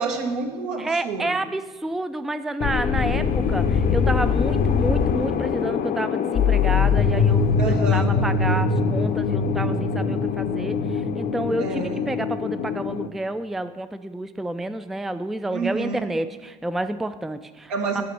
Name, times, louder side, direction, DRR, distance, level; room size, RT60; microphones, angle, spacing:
voice 1, 0.0-1.3 7.6-8.1 11.6-12.0 15.5-16.1 17.7-18.1, right 4 dB, 75° right, 2 dB, 1.4 m, -28 dB
voice 2, 0.8-17.7, right 1 dB, ahead, 11 dB, 0.4 m, -29 dB
sound 1, 2.6-13.1, left 5 dB, 45° left, 0.7 m, -22 dB
9.5 x 5.8 x 6.8 m, 1.4 s
figure-of-eight pair, 55°, 20 cm